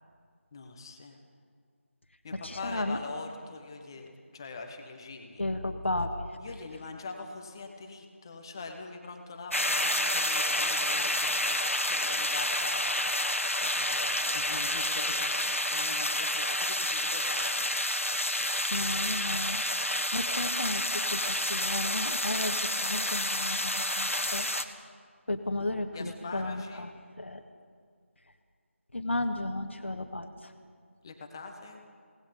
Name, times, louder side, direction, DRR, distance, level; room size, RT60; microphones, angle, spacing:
voice 1, 0.5-1.2 2.2-5.4 6.4-11.6 11.8-15.3 15.7-17.5 18.7-19.2 25.9-26.9 31.0-31.8, left 3 dB, 20° left, 4 dB, 1.4 m, -43 dB
voice 2, 2.3-3.0 5.4-6.4 18.3-19.6 20.1-24.5 25.3-26.9 27.2-27.4 28.9-30.5, left 2 dB, 60° left, 5 dB, 1.7 m, -34 dB
sound 1, 9.5-24.6, left 1 dB, 80° left, 1.7 m, -29 dB
29.0 x 19.0 x 5.4 m, 2.1 s
figure-of-eight pair, 165°, 7 cm